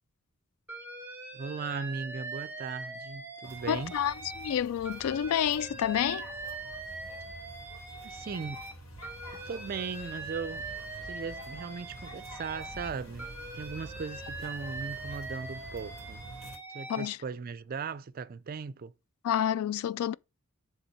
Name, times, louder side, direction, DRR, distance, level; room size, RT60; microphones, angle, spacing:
Alarm, 0.7-4.6 4.8-8.7 9.0-12.9 13.2-17.1, right 3 dB, 10° right, 1.3 m, -42 dB
voice 1, 1.3-3.9 8.0-8.6 9.3-10.7 11.0-16.2 16.7-18.9, right 5 dB, 45° right, 0.4 m, -38 dB
sound 1, 3.4-16.6, right 1 dB, 70° left, 2.5 m, -47 dB
voice 2, 3.7-6.3 16.9-17.2 19.2-20.1, left 9 dB, 85° left, 0.3 m, -29 dB
7.1 x 3.5 x 5.4 m
head